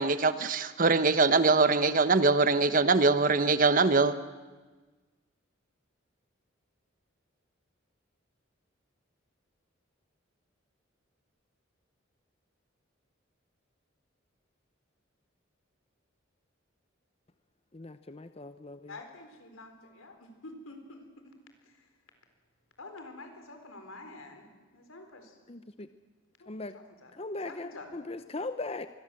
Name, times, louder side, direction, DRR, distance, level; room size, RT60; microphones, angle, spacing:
voice 1, 0.0-4.2, right 3 dB, 40° right, 12 dB, 1.0 m, -23 dB
voice 2, 17.7-18.9 25.5-25.9 26.5-26.7 27.2-28.9, left 2 dB, 30° left, 10 dB, 0.7 m, -39 dB
voice 3, 18.9-21.4 22.8-24.5 24.7-25.4 26.4-26.5 26.7-27.1 27.4-27.9, left 2 dB, 90° left, 6 dB, 4.3 m, -47 dB
25.5 x 22.0 x 7.7 m, 1.3 s
head